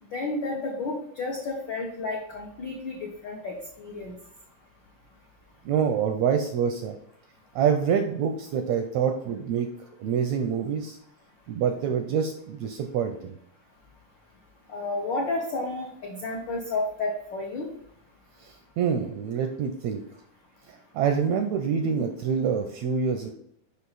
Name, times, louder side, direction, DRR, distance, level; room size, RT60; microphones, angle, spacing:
voice 1, 0.1-4.1 14.7-17.7, left 2 dB, 85° left, -1 dB, 1.0 m, -31 dB
voice 2, 5.6-7.0 7.6-9.7 10.0-11.0 11.5-13.3 18.4-20.0 20.7-23.3, right 7 dB, 80° right, 5 dB, 1.6 m, -26 dB
6.5 x 5.5 x 4.0 m, 0.71 s
omnidirectional pair, 3.6 m